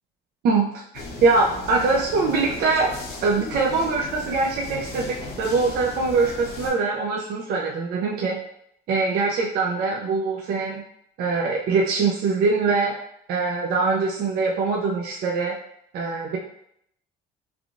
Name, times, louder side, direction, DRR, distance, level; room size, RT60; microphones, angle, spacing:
sound 1, 0.9-6.7, left 3 dB, 70° left, 0.8 m, -36 dB
voice 1, 1.2-2.9 3.2-8.4 8.9-10.8 11.2-12.9 13.3-15.6 15.9-16.4, right 4 dB, 65° right, -2 dB, 0.5 m, -23 dB
3.4 x 2.4 x 2.5 m, 0.72 s
cardioid pair, 110°, 17 cm